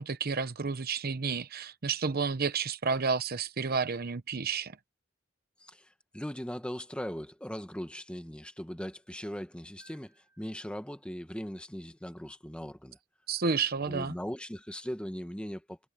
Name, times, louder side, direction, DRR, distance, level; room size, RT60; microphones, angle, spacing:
voice 1, 0.0-4.7 13.3-14.1, right 5 dB, 50° right, 0.9 m, -31 dB
voice 2, 5.6-13.0 13.9-15.8, equal, 5° left, 1.3 m, -39 dB
sound 1, 9.8-12.1 14.1-14.2, right 2 dB, 15° right, 6.9 m, -67 dB
head